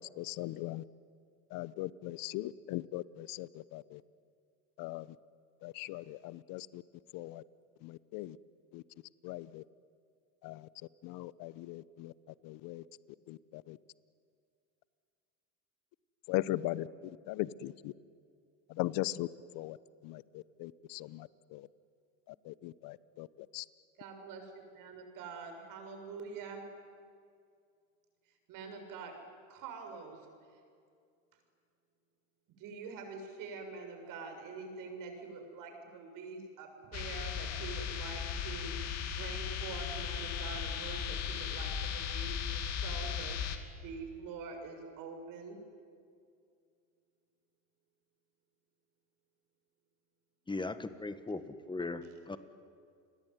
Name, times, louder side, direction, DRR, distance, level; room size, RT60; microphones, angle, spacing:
voice 1, 0.2-0.8 1.5-4.0 4.8-5.1 5.6-6.8 7.1-7.4 7.8-8.4 8.7-8.8 9.2-9.6 10.4-10.7 11.0-12.8 13.3-13.8 16.3-17.9 18.7-19.3 19.5-19.8 20.0-21.7 22.3-23.3 23.5-23.6, left 17 dB, 60° left, 18 dB, 1.0 m, -39 dB
voice 2, 24.0-26.7 28.5-29.2 29.5-30.3 32.6-38.8 39.1-43.4 43.8-45.6, right 4 dB, 55° right, 5 dB, 6.8 m, -45 dB
sound 1, 36.9-43.6, left 7 dB, 40° left, 2.8 m, -37 dB
voice 3, 50.5-51.4 51.7-52.4, left 3 dB, 10° left, 11 dB, 1.7 m, -38 dB
29.0 x 21.5 x 9.5 m, 2.3 s
supercardioid pair, 110°, 38 cm